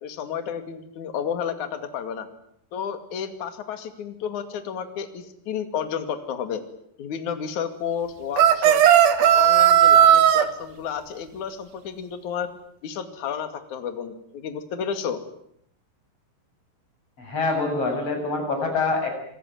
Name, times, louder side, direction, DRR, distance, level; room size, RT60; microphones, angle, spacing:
voice 1, 0.0-2.3 2.7-6.6 7.0-8.8 9.2-12.5 12.8-15.2, left 8 dB, 45° left, 8 dB, 2.9 m, -31 dB
sound 1, 8.4-10.5, right 10 dB, 65° right, 2.5 m, -15 dB
voice 2, 17.2-19.2, left 3 dB, 30° left, 3 dB, 8.3 m, -25 dB
26.5 x 21.5 x 9.3 m, 0.74 s
omnidirectional pair, 5.9 m